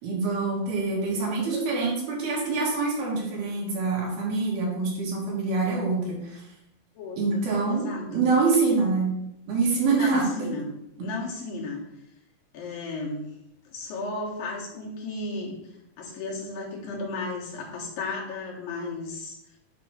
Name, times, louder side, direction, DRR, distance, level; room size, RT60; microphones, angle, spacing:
voice 1, 0.0-6.4 7.2-9.1 9.5-10.3 11.0-11.1, right 4 dB, 85° right, -3 dB, 3.9 m, -25 dB
voice 2, 6.9-8.2 9.9-10.7 11.0-11.8 12.5-13.3 13.7-15.6 16.0-19.4, left 3 dB, 75° left, -2 dB, 3.2 m, -34 dB
8.4 x 3.1 x 6.2 m, 0.85 s
omnidirectional pair, 4.2 m